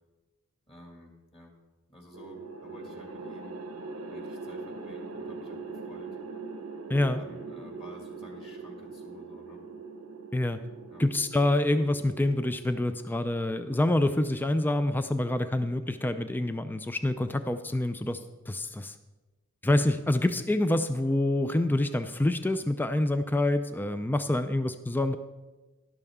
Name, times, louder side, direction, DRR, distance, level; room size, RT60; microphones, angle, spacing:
voice 1, 0.7-1.5 1.9-3.6 4.1-6.2 6.9-9.6 10.9-11.0, left 1 dB, 25° left, 1 dB, 2.1 m, -52 dB
sound 1, 2.1-14.5, right 4 dB, 85° right, 0.9 m, -42 dB
voice 2, 6.9-7.2 10.3-10.6 11.0-18.2 18.5-18.9 19.6-25.2, left 1 dB, 10° left, 10 dB, 0.4 m, -26 dB
12.5 x 12.0 x 3.6 m, 1.2 s
head